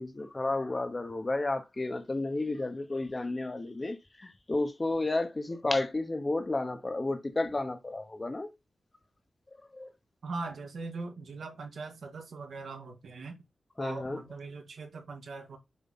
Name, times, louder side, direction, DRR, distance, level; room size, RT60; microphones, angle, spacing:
voice 1, 0.0-8.5 9.7-9.9 13.8-14.2, left 2 dB, 30° left, 1.0 m, -32 dB
voice 2, 10.2-13.4 13.8-15.6, right 3 dB, 85° right, 2.1 m, -41 dB
7.1 x 4.9 x 4.2 m
wide cardioid pair, 105°, 0 cm